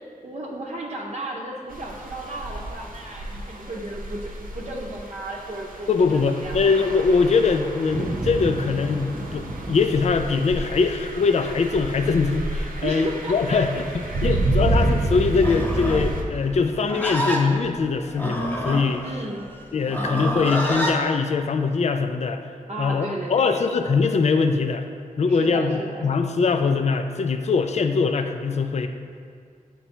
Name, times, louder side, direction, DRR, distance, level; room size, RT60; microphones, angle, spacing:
voice 1, 0.2-6.7 12.8-13.6 14.3-14.7 19.0-19.4 22.7-23.6 25.3-26.0, right 1 dB, 50° right, -4 dB, 0.7 m, -34 dB
sound 1, 1.7-16.2, right 2 dB, 80° right, 0.8 m, -29 dB
voice 2, 5.9-13.7 14.2-19.1 19.7-22.4 22.8-24.9 25.2-28.9, left 4 dB, 50° left, 7 dB, 0.4 m, -22 dB
Livestock farm animals working animals, 15.3-21.0, equal, 10° left, 0.7 m, -28 dB
7.8 x 4.5 x 4.3 m, 2.1 s
wide cardioid pair, 100°, 14 cm